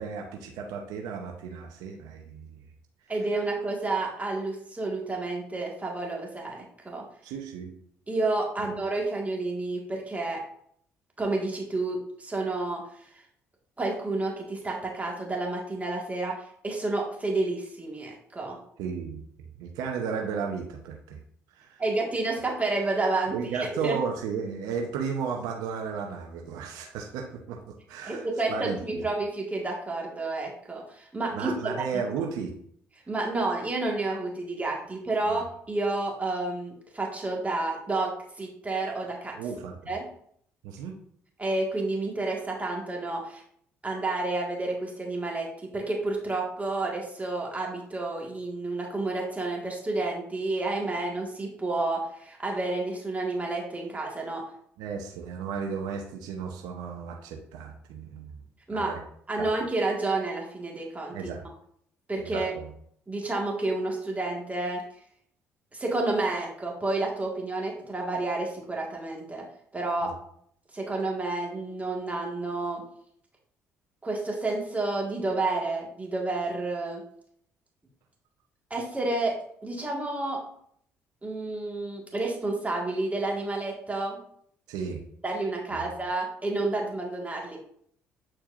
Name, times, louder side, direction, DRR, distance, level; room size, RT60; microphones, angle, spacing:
voice 1, 0.0-2.6 7.2-7.7 18.8-19.2 19.6-21.2 21.5-21.8 23.3-27.6 27.9-29.0 31.3-32.5 35.3-35.4 39.3-39.9 40.6-41.0 54.8-58.4 58.7-59.0 59.4-59.5 61.1-61.5 62.2-62.7 70.0-70.1 84.7-85.0 85.7-85.9, right 6 dB, 75° right, 2 dB, 0.8 m, -34 dB
voice 2, 3.1-7.0 8.1-10.4 11.2-13.1 13.8-18.6 21.8-24.0 28.0-31.8 33.1-39.3 39.9-40.0 41.4-43.4 43.8-54.4 58.7-58.9 59.3-61.2 62.1-62.5 63.1-64.8 65.7-69.4 69.7-70.1 70.7-72.8 74.0-77.0 78.7-79.4 79.6-80.4 81.2-84.2 85.2-87.6, right 2 dB, 20° right, -1 dB, 1.7 m, -30 dB
8.8 x 4.5 x 2.6 m, 0.64 s
hypercardioid pair, 55°, 7 cm